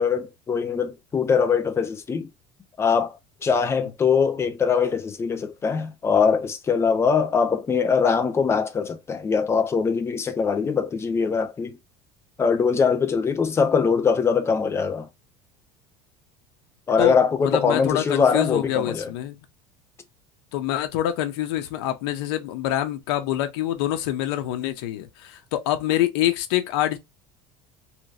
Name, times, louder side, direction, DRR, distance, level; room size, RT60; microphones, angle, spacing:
voice 1, 0.0-2.3 2.8-11.8 12.4-15.1 16.9-19.1, left 6 dB, 20° left, 0.8 m, -22 dB
voice 2, 17.0-19.4 20.5-27.0, left 13 dB, 80° left, 0.9 m, -26 dB
3.3 x 3.0 x 2.4 m
cardioid pair, 135°, 13 cm